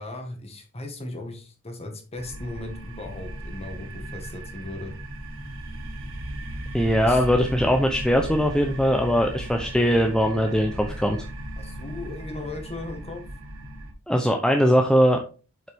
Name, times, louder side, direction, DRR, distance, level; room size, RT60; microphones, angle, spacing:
voice 1, 0.0-4.9 7.0-7.2 11.6-13.2, left 2 dB, 30° left, 3 dB, 1.8 m, -37 dB
sound 1, 2.2-13.9, right 1 dB, 65° right, 1.5 m, -36 dB
voice 2, 6.7-11.2 14.1-15.2, equal, 5° left, 3 dB, 0.7 m, -21 dB
7.6 x 5.6 x 3.6 m, 0.35 s
head